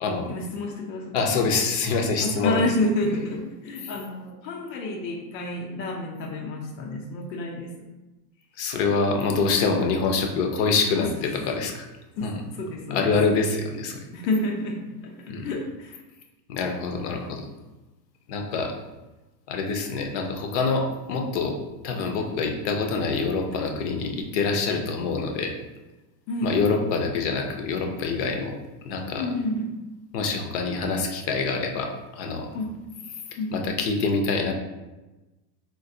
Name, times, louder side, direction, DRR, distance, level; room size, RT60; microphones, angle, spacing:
voice 1, 0.3-1.3 2.2-7.8 11.0-11.1 12.2-13.1 14.1-16.0 26.3-26.5 29.2-29.7 32.5-32.8 33.4-33.7, left 2 dB, 90° left, 0 dB, 0.7 m, -29 dB
voice 2, 1.1-2.6 8.6-11.8 12.2-12.4 12.9-14.0 15.3-15.5 16.5-17.5 18.3-18.7 19.5-21.6 21.8-25.5 26.4-28.6 28.8-29.2 30.1-32.5 33.5-34.5, left 4 dB, 45° left, 3 dB, 0.5 m, -25 dB
3.8 x 2.5 x 2.6 m, 1.1 s
supercardioid pair, 145°, 49 cm